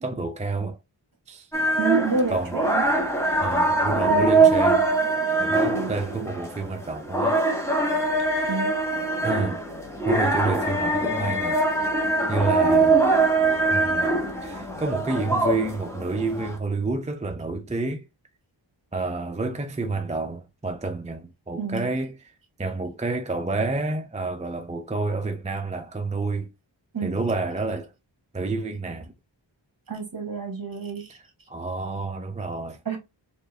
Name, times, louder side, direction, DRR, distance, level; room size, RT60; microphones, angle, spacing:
voice 1, 0.0-0.8 1.3-1.5 2.3-2.6 3.4-4.9 5.4-7.4 8.3-8.6 9.2-9.7 10.1-11.6 12.3-13.1 13.7-18.0 18.9-22.3 22.6-26.5 27.0-27.9 28.3-29.1 31.1-31.2 31.5-32.8, right 3 dB, 15° right, 0.5 m, -29 dB
sound 1, 1.5-16.6, right 3 dB, 5° left, 1.1 m, -23 dB
voice 2, 1.8-2.8 3.9-4.5 5.7-5.9 8.5-8.7 12.6-12.8 21.6-21.8 26.9-27.2 29.9-31.2 32.8-33.0, right 5 dB, 50° right, 1.4 m, -29 dB
4.4 x 2.6 x 3.2 m
wide cardioid pair, 50°, 46 cm